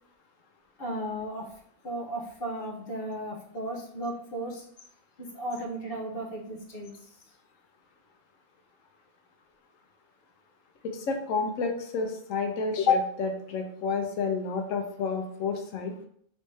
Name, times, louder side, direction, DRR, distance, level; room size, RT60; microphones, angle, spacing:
voice 1, 0.8-4.6 5.2-7.2, right 1 dB, 50° left, -1 dB, 1.1 m, -36 dB
voice 2, 10.9-15.9, left 5 dB, 85° left, 4 dB, 1.1 m, -29 dB
3.5 x 3.2 x 4.1 m, 0.63 s
omnidirectional pair, 1.3 m